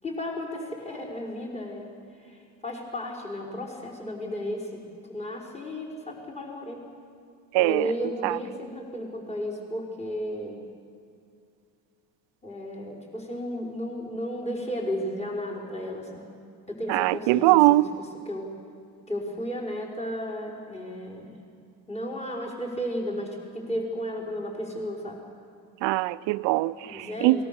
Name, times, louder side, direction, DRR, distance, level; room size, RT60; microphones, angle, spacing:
voice 1, 0.0-1.9 2.2-6.8 7.6-10.6 12.4-16.4 16.7-18.5 19.1-21.4 21.9-25.2 26.8-27.4, equal, 15° left, -3 dB, 5.4 m, -34 dB
voice 2, 7.5-7.9 8.2-8.4 16.9-17.9 25.8-27.4, right 19 dB, 75° right, 16 dB, 0.7 m, -22 dB
28.0 x 20.5 x 7.1 m, 2.3 s
supercardioid pair, 75°, 44 cm